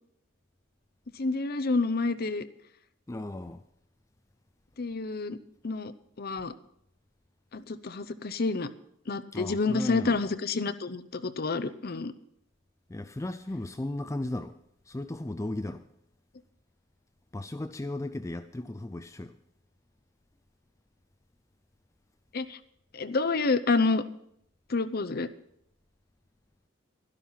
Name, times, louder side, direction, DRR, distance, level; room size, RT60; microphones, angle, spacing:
voice 1, 1.2-2.5 4.8-5.4 5.6-5.9 6.2-6.5 7.5-8.7 9.1-12.1 22.3-22.6 22.9-24.0 24.7-25.3, left 3 dB, 50° left, 0.7 m, -28 dB
voice 2, 3.1-3.6 9.3-10.2 12.9-14.6 14.9-15.8 17.3-19.4, left 1 dB, 15° left, 0.4 m, -35 dB
12.0 x 12.0 x 5.7 m
head